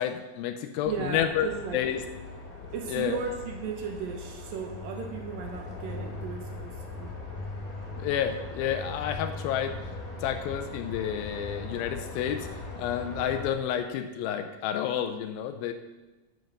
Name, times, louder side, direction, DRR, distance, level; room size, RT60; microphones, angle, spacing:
voice 1, 0.0-2.0 2.9-3.2 8.0-9.8 10.2-15.7, left 9 dB, 90° left, 6 dB, 2.4 m, -30 dB
sound 1, 0.8-13.5, left 3 dB, 70° left, 0.8 m, -40 dB
voice 2, 0.9-1.9 2.7-7.2, right 5 dB, 75° right, 2 dB, 2.6 m, -36 dB
8.0 x 5.3 x 6.5 m, 1.1 s
omnidirectional pair, 4.1 m